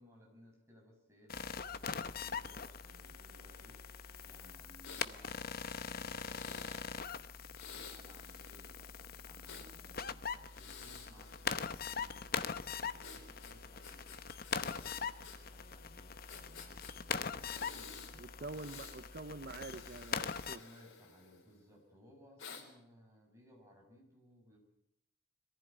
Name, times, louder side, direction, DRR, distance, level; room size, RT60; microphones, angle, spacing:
voice 1, 0.0-5.4 5.8-18.8 20.4-24.6, equal, 15° right, -1 dB, 7.1 m, -62 dB
sound 1, 1.3-20.6, left 6 dB, 50° left, 0.8 m, -42 dB
Breathing, 4.8-5.1 6.2-6.8 7.5-9.7 10.4-12.1 13.0-15.4 15.6-15.7 16.3-16.9 17.4-18.1 18.5-19.0 19.4-21.6 22.4-22.6, left 6 dB, 90° left, 4.1 m, -52 dB
voice 2, 18.1-20.6, right 3 dB, 50° right, 10 dB, 0.7 m, -46 dB
22.0 x 15.0 x 9.4 m, 0.77 s
head